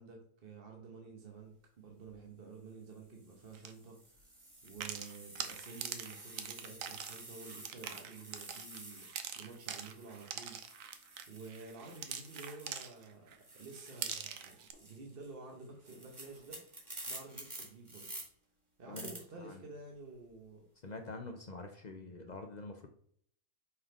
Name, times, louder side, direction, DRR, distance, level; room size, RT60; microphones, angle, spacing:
voice 1, 0.0-4.2 4.6-10.6 11.3-13.3 13.5-16.6 17.1-18.1 18.8-20.6, right 4 dB, 40° right, 1 dB, 1.1 m, -51 dB
sound 1, 1.9-2.1 2.9-13.0 13.3-18.2 18.9-19.2, right 1 dB, 20° right, 1.9 m, -51 dB
sound 2, 3.5-3.7 4.7-13.4 13.7-14.7, right 8 dB, 65° right, 1.0 m, -43 dB
voice 2, 20.8-22.9, left 3 dB, 70° left, 4 dB, 0.4 m, -46 dB
5.6 x 4.0 x 5.0 m, 0.62 s
omnidirectional pair, 1.6 m